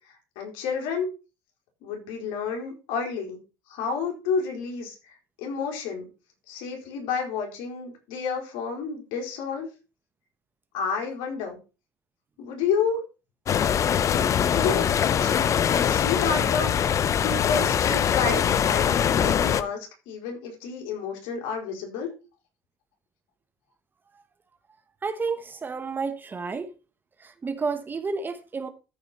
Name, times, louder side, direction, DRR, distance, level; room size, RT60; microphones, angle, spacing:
voice 1, 0.1-1.1 1.8-3.4 3.7-6.1 6.5-9.7 10.7-11.6 12.4-13.1 13.9-22.1, left 5 dB, 80° left, 4.1 m, -30 dB
sound 1, 13.5-19.6, left 8 dB, 40° left, 0.7 m, -22 dB
voice 2, 25.0-26.7 27.2-28.7, right 4 dB, 25° right, 1.0 m, -31 dB
14.0 x 4.9 x 4.2 m
cardioid pair, 115°, 8 cm